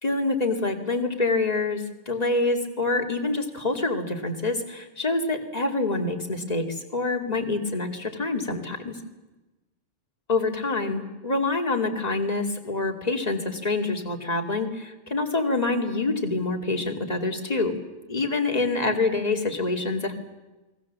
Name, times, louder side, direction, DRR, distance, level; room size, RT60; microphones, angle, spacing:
voice 1, 0.0-9.0 10.3-17.7 18.1-20.1, left 3 dB, 30° left, 3 dB, 2.5 m, -26 dB
29.5 x 21.0 x 7.4 m, 1.1 s
omnidirectional pair, 1.4 m